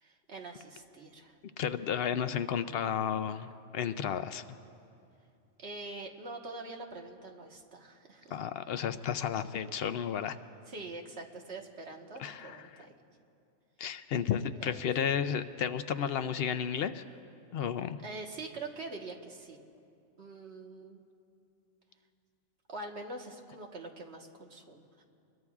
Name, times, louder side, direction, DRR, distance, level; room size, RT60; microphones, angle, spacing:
voice 1, 0.0-1.4 5.6-8.3 10.7-12.9 14.5-14.8 18.0-19.6 20.2-21.0 22.7-25.0, right 2 dB, 60° right, 1 dB, 1.6 m, -44 dB
voice 2, 1.6-4.4 8.3-10.4 12.2-12.8 13.8-17.0 17.5-18.0, left 8 dB, 60° left, 11 dB, 0.7 m, -32 dB
26.0 x 21.5 x 2.4 m, 2.6 s
omnidirectional pair, 1.3 m